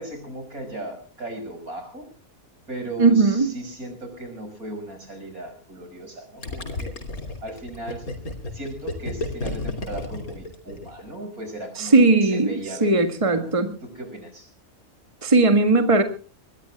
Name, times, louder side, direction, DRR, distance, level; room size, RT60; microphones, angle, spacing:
voice 1, 0.0-2.1 2.7-7.0 7.4-8.1 8.5-13.5 13.8-14.5, right 1 dB, 80° right, 6 dB, 6.3 m, -37 dB
voice 2, 3.0-3.5 11.8-12.5 12.8-13.8 15.2-16.0, right 3 dB, 25° right, 7 dB, 1.8 m, -18 dB
Gurgling, 6.4-11.1, left 2 dB, 80° left, 3.3 m, -32 dB
24.5 x 20.5 x 2.3 m, 0.37 s
omnidirectional pair, 1.5 m